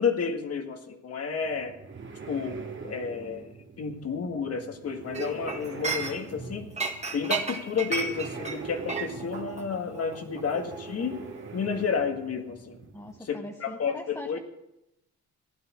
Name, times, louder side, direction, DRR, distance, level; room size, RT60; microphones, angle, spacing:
voice 1, 0.0-1.8 2.3-6.7 7.1-11.2 11.5-12.8 13.3-14.4, left 5 dB, 55° left, 5 dB, 1.9 m, -31 dB
sound 1, 1.4-13.2, right 4 dB, 40° right, 2.1 m, -42 dB
Chink clink, 5.1-6.4 6.8-11.4 11.6-11.9, right 4 dB, 20° right, 1.9 m, -34 dB
voice 2, 12.9-14.4, left 1 dB, 10° left, 2 dB, 1.1 m, -41 dB
16.0 x 11.0 x 6.2 m, 0.90 s
cardioid pair, 90°, 30 cm